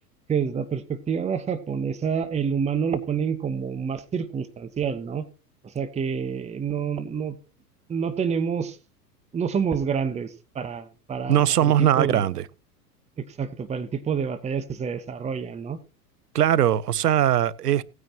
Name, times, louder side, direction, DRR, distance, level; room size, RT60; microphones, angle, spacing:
voice 1, 0.3-5.3 5.6-7.4 7.9-8.8 9.3-12.3 13.2-15.8, right 6 dB, 15° right, 1.0 m, -28 dB
voice 2, 11.3-12.4 16.3-17.8, right 11 dB, 75° right, 0.7 m, -20 dB
17.5 x 9.5 x 2.9 m
figure-of-eight pair, 90°, 48 cm